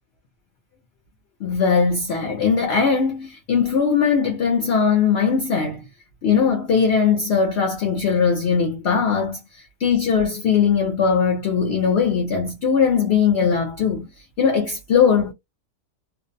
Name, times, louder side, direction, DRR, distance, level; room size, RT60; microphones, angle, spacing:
voice 1, 1.4-5.9 6.2-15.3, left 6 dB, 60° left, 0.7 m, -20 dB
2.5 x 2.0 x 2.5 m
omnidirectional pair, 1.6 m